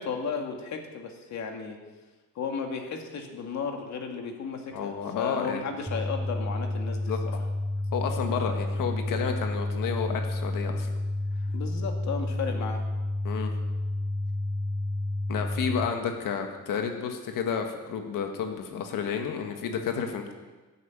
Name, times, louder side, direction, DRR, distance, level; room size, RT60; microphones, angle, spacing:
voice 1, 0.0-1.8 2.4-7.0 7.3-7.4 11.5-12.8, left 5 dB, 60° left, 4 dB, 2.2 m, -34 dB
voice 2, 4.7-5.7 7.1-7.2 7.9-10.9 13.2-13.5 15.3-20.3, left 6 dB, 90° left, 4 dB, 1.8 m, -31 dB
sound 1, 5.9-15.9, left 1 dB, ahead, 0.7 m, -30 dB
14.0 x 9.2 x 9.2 m, 1.3 s
cardioid pair, 170°, 32 cm